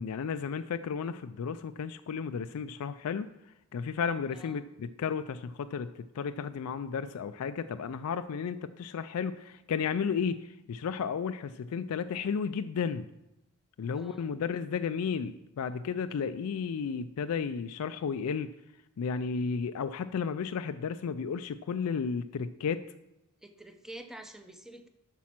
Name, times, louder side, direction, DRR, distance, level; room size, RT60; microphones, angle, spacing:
voice 1, 0.0-3.3 3.7-13.1 13.8-18.5 19.0-22.8, left 6 dB, 75° left, 10 dB, 0.4 m, -33 dB
voice 2, 4.3-4.7 13.9-14.3 23.4-24.9, right 1 dB, ahead, 7 dB, 0.7 m, -48 dB
8.5 x 6.1 x 5.9 m, 0.90 s
head